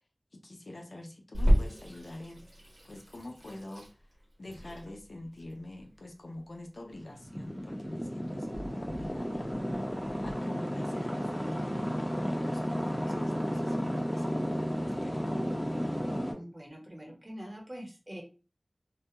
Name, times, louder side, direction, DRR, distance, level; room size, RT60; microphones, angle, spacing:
voice 1, 0.3-2.5 2.8-3.9 4.4-9.5 9.9-15.2, left 1 dB, 80° left, 1 dB, 0.5 m, -45 dB
Water tap faucet / Sink (filling or washing), 1.3-10.3, equal, 85° right, 0.9 m, -33 dB
sound 1, 6.9-16.3, equal, 10° left, 0.7 m, -33 dB
voice 2, 16.3-18.2, equal, 35° right, -1 dB, 1.1 m, -44 dB
2.3 x 2.2 x 2.8 m, 0.33 s
wide cardioid pair, 45°, 0 cm